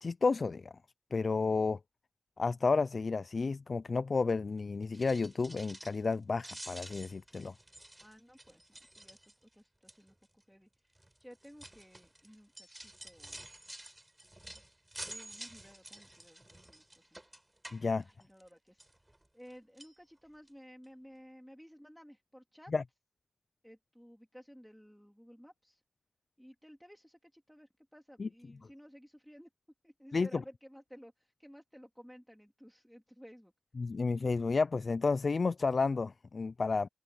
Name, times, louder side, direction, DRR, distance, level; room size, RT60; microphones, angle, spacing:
voice 1, 0.0-0.7 1.1-1.8 2.4-7.5 17.7-18.0 22.7-22.8 28.2-28.3 30.1-30.4 33.8-36.9, left 4 dB, 60° left, 0.3 m, -31 dB
sound 1, 4.8-6.1 6.4-9.5 9.9-10.2 11.0-18.5 18.8-19.5 19.8-20.0 20.5-20.6 20.8-20.9, right 1 dB, 15° right, 5.9 m, -50 dB
voice 2, 8.0-9.2 9.5-10.9 11.2-13.5 15.0-17.2 18.0-18.8 19.3-22.7 23.6-25.8 26.4-29.5 29.8-33.5, equal, ahead, 2.5 m, -56 dB
wide cardioid pair, 80°, 0 cm